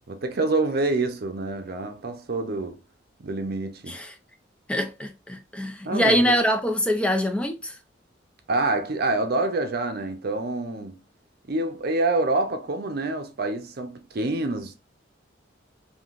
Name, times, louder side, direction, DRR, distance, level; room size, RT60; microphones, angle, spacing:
voice 1, 0.1-2.8 3.2-4.0 5.8-6.3 8.5-11.0 11.5-14.8, right 2 dB, 55° right, 0.6 m, -27 dB
voice 2, 4.7-7.8, equal, 5° left, 0.3 m, -24 dB
3.6 x 2.7 x 2.4 m
head